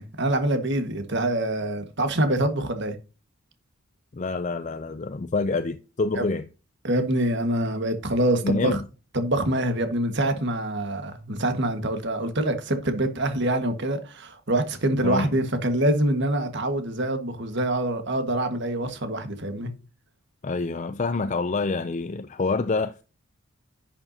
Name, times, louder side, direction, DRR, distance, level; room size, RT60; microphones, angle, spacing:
voice 1, 0.0-2.9 6.1-6.2 6.8-8.8 9.1-19.7, right 1 dB, 50° right, 1.6 m, -25 dB
voice 2, 4.1-6.5 8.4-8.8 15.0-15.3 20.4-23.0, left 3 dB, 35° left, 0.4 m, -27 dB
11.0 x 7.1 x 2.8 m
head